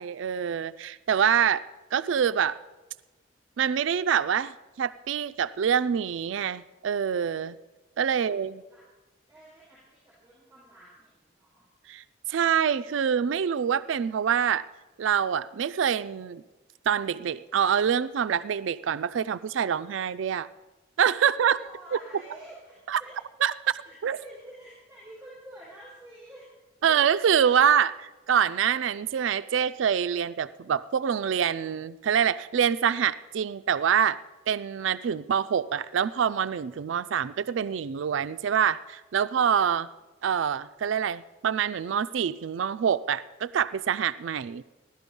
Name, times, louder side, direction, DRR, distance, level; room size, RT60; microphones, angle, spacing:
voice 1, 0.0-1.6 1.9-2.6 3.6-4.5 4.8-7.6 8.0-8.6 11.9-12.0 12.3-14.6 15.0-16.4 16.9-20.5 21.0-21.6 21.9-22.0 22.9-23.0 23.4-23.8 24.0-24.2 26.8-34.2 34.5-39.9 40.2-44.6, right 8 dB, 75° right, 13 dB, 0.4 m, -25 dB
voice 2, 8.1-8.8 9.3-11.6 21.2-23.1 23.8-26.5 26.9-27.0, right 1 dB, 10° right, -8 dB, 5.4 m, -49 dB
16.5 x 12.0 x 5.3 m, 1.1 s
head